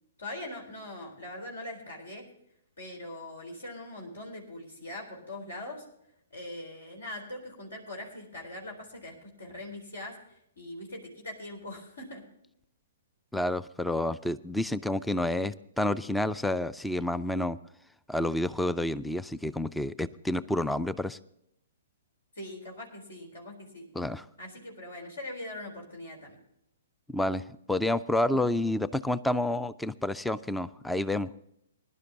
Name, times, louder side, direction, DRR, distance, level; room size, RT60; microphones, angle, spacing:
voice 1, 0.2-2.3 2.8-5.8 6.3-12.2 22.3-23.9 24.4-26.4, left 1 dB, 70° left, 1 dB, 4.1 m, -42 dB
voice 2, 13.3-17.6 18.1-21.2 24.0-24.2 27.1-31.4, left 1 dB, 5° left, 18 dB, 0.4 m, -29 dB
21.5 x 11.5 x 2.9 m, 0.76 s
figure-of-eight pair, 120°, 0 cm